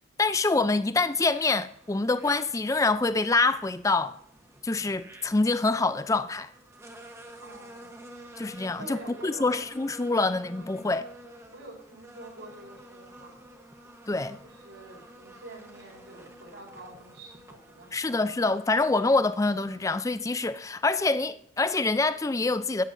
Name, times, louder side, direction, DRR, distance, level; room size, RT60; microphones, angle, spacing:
voice 1, 0.2-4.2 4.6-6.5 8.4-11.0 14.1-14.4 17.9-22.8, left 3 dB, 15° left, 0.4 m, -26 dB
sound 1, 1.0-19.8, right 1 dB, 15° right, 1.0 m, -50 dB
voice 2, 7.4-8.0 8.8-9.5 10.0-10.2 10.5-10.8 11.5-13.4 14.4-18.2, right 2 dB, 80° right, 4.7 m, -47 dB
13.5 x 9.2 x 2.6 m
head